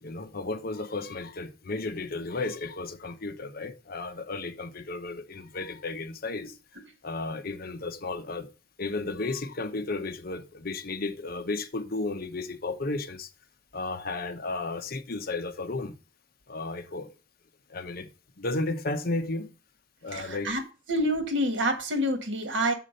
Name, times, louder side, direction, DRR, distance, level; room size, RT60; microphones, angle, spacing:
voice 1, 0.0-6.6 7.0-8.5 8.8-13.3 13.7-16.0 16.5-17.1 17.7-18.1 18.4-19.5 20.0-20.6, left 3 dB, 55° left, 0.9 m, -33 dB
voice 2, 20.1-20.6 20.9-22.7, equal, 75° right, 1.6 m, -27 dB
6.8 x 4.7 x 6.4 m
head